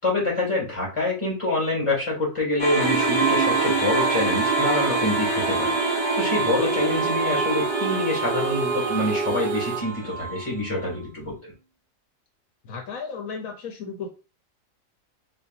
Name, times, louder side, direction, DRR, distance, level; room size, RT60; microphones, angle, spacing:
voice 1, 0.0-11.4, left 2 dB, 20° left, -4 dB, 2.5 m, -26 dB
sound 1, 2.6-10.9, right 2 dB, 40° left, 2.3 m, -27 dB
sound 2, 2.8-9.8, right 5 dB, 65° right, 0.4 m, -27 dB
voice 2, 12.6-14.1, left 5 dB, 80° left, 2 dB, 1.2 m, -34 dB
4.4 x 3.8 x 2.6 m, 0.32 s
omnidirectional pair, 1.4 m